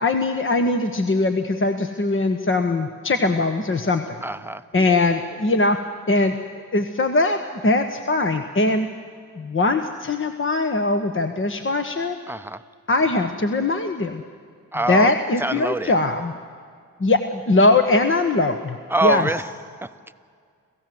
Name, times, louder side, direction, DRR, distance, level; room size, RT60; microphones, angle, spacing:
voice 1, 0.0-4.2 4.7-5.8 6.1-6.3 6.7-8.9 9.3-12.2 12.9-14.2 14.9-16.3 17.0-18.8 19.0-19.3, left 2 dB, 35° left, 6 dB, 1.4 m, -21 dB
voice 2, 4.2-5.0 12.3-12.6 14.7-15.1 15.4-16.0 18.9-19.4 19.8-20.1, right 1 dB, 5° right, 12 dB, 0.8 m, -25 dB
27.5 x 15.0 x 7.9 m, 2.1 s
cardioid pair, 60°, 33 cm